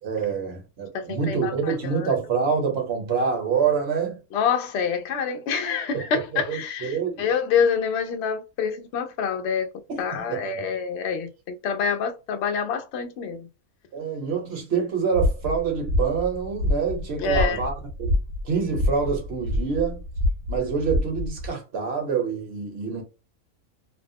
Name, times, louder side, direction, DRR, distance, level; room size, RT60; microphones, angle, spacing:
voice 1, 0.0-4.2 5.9-6.0 6.3-7.2 9.9-10.6 13.9-18.2 18.4-20.0 20.5-23.0, right 6 dB, 50° right, 1.0 m, -26 dB
voice 2, 0.9-2.1 4.3-9.7 10.0-13.5 17.2-17.6, left 6 dB, 65° left, 0.7 m, -26 dB
sound 1, 15.1-21.5, left 1 dB, 80° right, 1.2 m, -27 dB
2.7 x 2.0 x 2.6 m
omnidirectional pair, 1.6 m